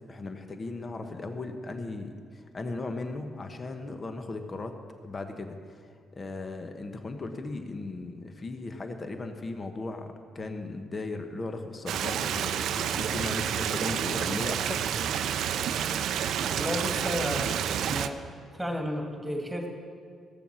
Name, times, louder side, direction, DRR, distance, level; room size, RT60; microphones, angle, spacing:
voice 1, 0.1-14.8, left 3 dB, 40° left, 6 dB, 1.1 m, -37 dB
Stream, 11.9-18.1, right 9 dB, 75° right, 0.4 m, -29 dB
voice 2, 16.5-18.2 18.5-19.7, equal, 5° right, 2 dB, 2.4 m, -33 dB
15.5 x 6.9 x 6.3 m, 2.1 s
supercardioid pair, 60°, 0 cm